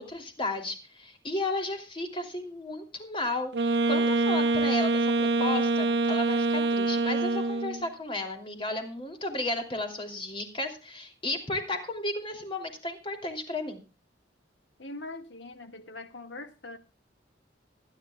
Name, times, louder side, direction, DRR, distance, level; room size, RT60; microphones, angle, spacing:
voice 1, 0.0-13.8, left 2 dB, 30° left, 2.9 m, -34 dB
Wind instrument woodwind instrument, 3.5-7.9, right 3 dB, 65° right, 1.0 m, -25 dB
voice 2, 14.8-16.8, left 2 dB, 85° left, 1.9 m, -42 dB
25.0 x 10.5 x 2.3 m
head